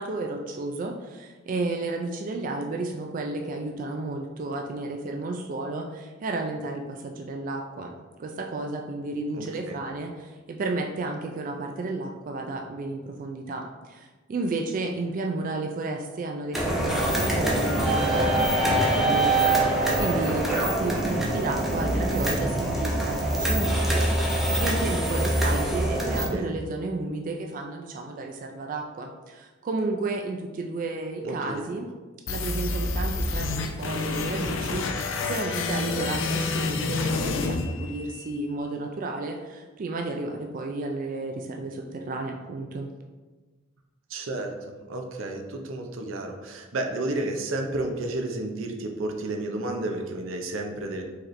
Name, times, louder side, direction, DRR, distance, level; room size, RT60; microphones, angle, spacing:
voice 1, 0.0-24.3 24.5-31.9 32.3-42.9, right 2 dB, 45° right, 2 dB, 0.3 m, -32 dB
voice 2, 9.3-9.8 21.2-21.4 26.2-26.5 31.2-31.6 44.1-44.5 44.9-51.0, right 2 dB, 85° right, 3 dB, 0.6 m, -31 dB
sound 1, 16.5-26.3, right 1 dB, ahead, 0.6 m, -24 dB
sound 2, 32.3-38.3, left 3 dB, 70° left, 0.5 m, -28 dB
4.7 x 3.1 x 3.1 m, 1.3 s
head